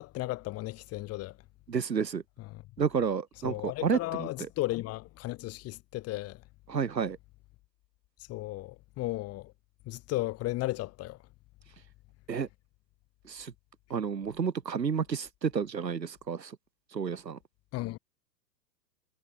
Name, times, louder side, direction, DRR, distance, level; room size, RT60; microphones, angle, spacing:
voice 1, 0.0-1.4 2.5-2.6 3.4-6.4 8.3-9.5 9.8-11.2 17.7-18.0, left 18 dB, 30° left, 3.0 m, -35 dB
voice 2, 1.7-2.2 2.8-4.5 6.7-7.2 12.3-12.5 13.2-13.5 13.9-16.6 16.9-17.4, right 6 dB, 80° right, 5.5 m, -31 dB
hypercardioid pair, 115°, 50 cm